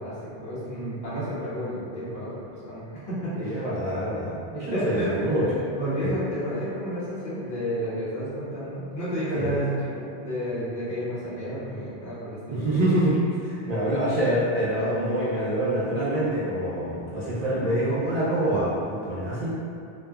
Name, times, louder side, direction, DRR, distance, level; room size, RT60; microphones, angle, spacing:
voice 1, 0.0-3.6 4.7-12.6, equal, 70° left, -10 dB, 1.1 m, -31 dB
voice 2, 3.4-5.4 6.0-6.1 9.3-9.6 12.5-19.5, right 1 dB, 55° right, -9 dB, 0.4 m, -26 dB
3.0 x 2.1 x 2.3 m, 2.4 s
omnidirectional pair, 1.1 m